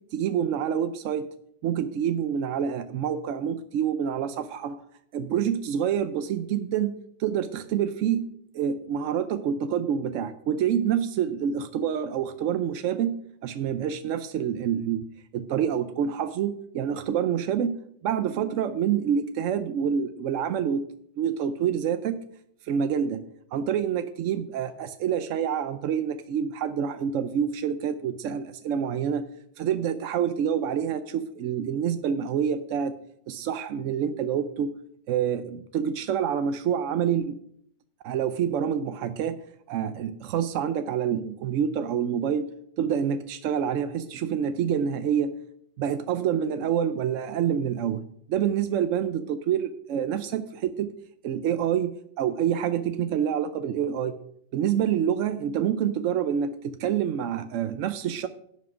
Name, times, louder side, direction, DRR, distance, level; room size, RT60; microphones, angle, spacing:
voice 1, 0.1-1.3 1.6-4.8 5.1-15.1 15.3-17.8 18.0-20.8 21.2-22.2 22.6-23.2 23.5-29.3 29.6-32.9 33.3-34.7 35.1-37.4 38.0-39.4 39.7-42.5 42.8-45.3 45.8-50.9 51.2-54.2 54.5-58.3, right 8 dB, 85° right, 10 dB, 1.0 m, -27 dB
11.5 x 7.4 x 4.8 m, 0.70 s
omnidirectional pair, 1.3 m